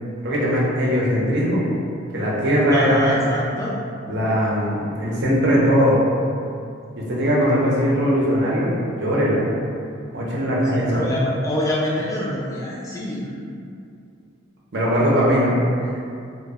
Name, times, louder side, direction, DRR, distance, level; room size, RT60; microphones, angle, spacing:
voice 1, 0.2-1.6 2.1-3.2 4.1-6.0 7.1-8.7 9.0-9.4 10.1-10.9 14.7-15.6 15.8-15.9, equal, 55° right, -6 dB, 0.6 m, -20 dB
voice 2, 2.7-3.8 10.6-13.3, left 1 dB, 15° left, -6 dB, 0.4 m, -25 dB
2.0 x 2.0 x 3.4 m, 2.5 s
head